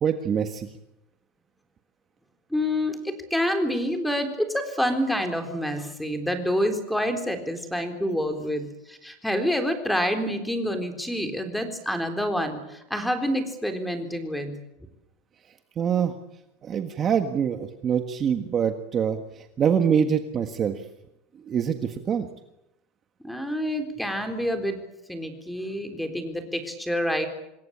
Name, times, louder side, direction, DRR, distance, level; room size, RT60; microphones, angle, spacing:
voice 1, 0.0-0.7 15.8-16.1 16.6-20.8 21.5-22.3, right 7 dB, 30° right, 7 dB, 1.6 m, -25 dB
voice 2, 2.5-14.6 23.2-24.8 25.1-27.3, equal, ahead, 6 dB, 3.9 m, -27 dB
27.0 x 20.5 x 8.8 m, 0.88 s
supercardioid pair, 150°, 0 cm